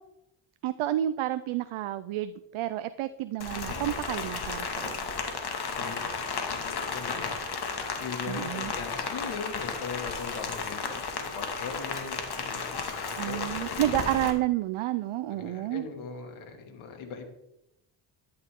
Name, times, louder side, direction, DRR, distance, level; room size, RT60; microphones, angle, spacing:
voice 1, 0.6-5.0 8.3-8.7 13.2-15.8, right 13 dB, 80° right, 12 dB, 0.7 m, -30 dB
Rain, 3.4-14.3, left 5 dB, 50° left, 2.2 m, -34 dB
voice 2, 5.7-7.4 8.0-14.0 15.3-17.3, left 5 dB, 85° left, 4 dB, 2.6 m, -40 dB
13.5 x 10.5 x 3.8 m, 0.86 s
cardioid pair, 85°, 48 cm